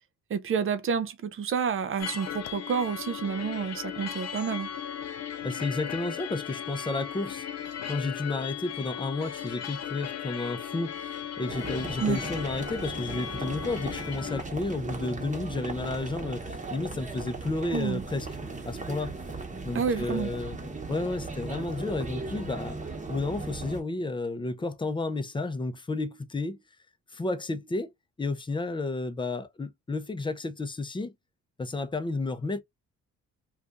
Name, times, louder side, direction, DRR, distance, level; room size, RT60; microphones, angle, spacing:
voice 1, 0.3-4.7 12.0-12.2 17.7-18.0 19.7-20.3, right 6 dB, 45° right, 0.7 m, -29 dB
sound 1, 2.0-14.4, left 9 dB, 55° left, 0.7 m, -37 dB
voice 2, 5.4-7.5 7.9-18.3 18.6-19.2 19.6-20.6 20.9-26.6 27.1-27.9 28.2-31.1 31.6-32.6, left 2 dB, 15° left, 0.6 m, -32 dB
sound 2, 11.5-23.8, right 3 dB, 25° right, 1.0 m, -37 dB
2.6 x 2.4 x 3.4 m
cardioid pair, 90°, 30 cm